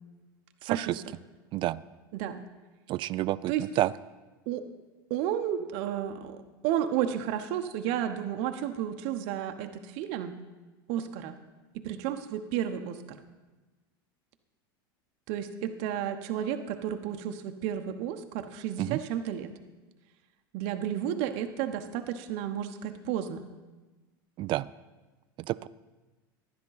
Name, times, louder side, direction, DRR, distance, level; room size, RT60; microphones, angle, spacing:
voice 1, 0.6-1.0 1.5-1.8 2.9-3.9 18.8-19.0 24.4-24.7 25.5-25.7, right 16 dB, 45° right, 18 dB, 0.4 m, -29 dB
voice 2, 5.1-10.4 10.9-11.3 11.8-13.2 15.3-19.5 20.5-23.4, right 10 dB, 60° right, 6 dB, 0.9 m, -32 dB
11.5 x 10.5 x 4.0 m, 1.2 s
hypercardioid pair, 100°, 12 cm